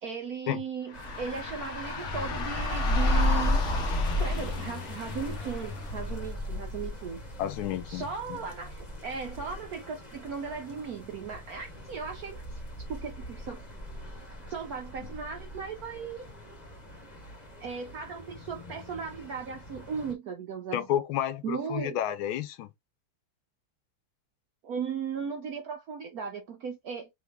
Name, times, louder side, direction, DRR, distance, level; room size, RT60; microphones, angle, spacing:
voice 1, 0.0-3.6 4.2-7.2 7.9-12.4 12.9-13.6 14.5-16.2 17.6-21.0 21.4-22.0 24.6-27.1, right 6 dB, 70° right, 0.9 m, -37 dB
sound 1, 0.9-6.1, left 5 dB, 55° left, 0.8 m, -36 dB
sound 2, 0.9-20.1, left 1 dB, 25° left, 1.0 m, -35 dB
voice 2, 7.4-8.4 20.7-22.7, left 11 dB, 80° left, 1.4 m, -31 dB
3.6 x 3.1 x 3.4 m
omnidirectional pair, 2.3 m